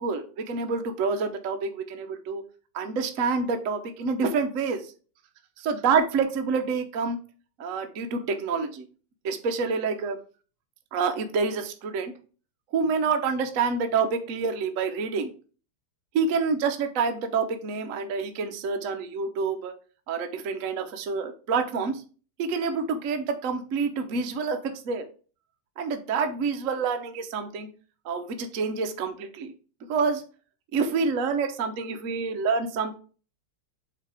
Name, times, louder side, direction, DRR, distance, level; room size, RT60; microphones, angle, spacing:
voice 1, 0.0-2.4 2.7-4.9 5.6-7.2 7.6-8.9 9.2-10.2 10.9-12.1 12.7-15.3 16.1-19.7 20.1-22.0 22.4-25.1 25.8-27.7 28.0-29.5 29.9-30.2 30.7-32.9, right 5 dB, 60° right, 6 dB, 0.8 m, -27 dB
8.5 x 2.9 x 4.8 m, 0.38 s
omnidirectional pair, 2.4 m